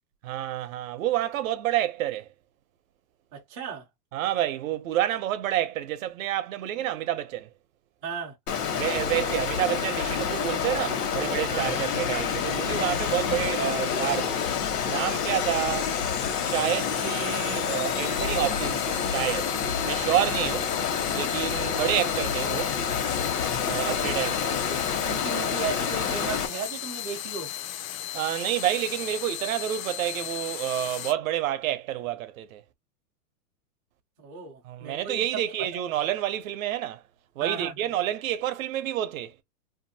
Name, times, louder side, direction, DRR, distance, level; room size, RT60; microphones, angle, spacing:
voice 1, 0.2-2.3 4.1-7.5 8.8-14.4 14.8-15.9 16.4-19.5 19.8-20.7 21.1-22.8 23.6-24.5 28.1-32.6 34.6-37.0 37.4-39.3, right 12 dB, 60° right, 0.7 m, -29 dB
voice 2, 3.3-3.8 8.0-8.3 11.5-11.6 23.7-24.2 24.7-27.5 34.2-35.4 37.4-37.7, right 5 dB, 15° right, 0.4 m, -35 dB
Water, 8.5-26.5, left 7 dB, 80° left, 1.1 m, -28 dB
sound 1, 11.6-31.1, left 11 dB, 60° left, 0.6 m, -36 dB
2.6 x 2.6 x 2.6 m
supercardioid pair, 150°, 46 cm